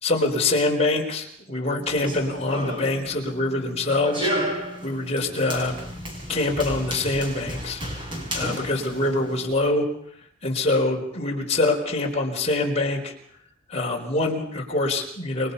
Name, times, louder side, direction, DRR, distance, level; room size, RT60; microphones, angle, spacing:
voice 1, 0.0-4.3 4.8-5.8 6.3-7.8 8.3-9.9 10.4-13.1 13.7-15.5, left 2 dB, 35° left, 0 dB, 4.4 m, -24 dB
Run, 1.8-9.5, equal, 25° right, 6.4 m, -33 dB
28.5 x 24.0 x 5.6 m, 0.65 s
head